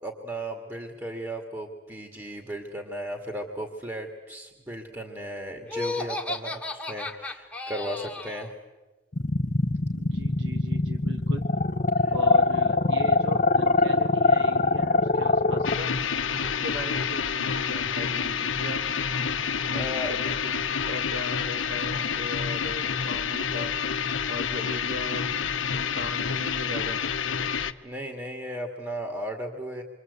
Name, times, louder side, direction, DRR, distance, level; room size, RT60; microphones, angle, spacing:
voice 1, 0.0-8.5 12.0-12.1 19.7-20.1 27.8-29.8, right 1 dB, 15° right, 2 dB, 2.1 m, -35 dB
Laughter, 5.7-8.5, left 2 dB, 5° left, 1.9 m, -33 dB
sound 1, 9.1-15.8, left 3 dB, 40° left, 0.8 m, -22 dB
voice 2, 10.0-11.5 12.1-15.9 16.4-18.8 19.6-23.8 24.3-27.0, left 1 dB, 70° right, 3 dB, 1.8 m, -38 dB
sound 2, 15.6-27.7, left 6 dB, 85° left, 1.0 m, -28 dB
27.5 x 24.5 x 8.2 m, 1.2 s
head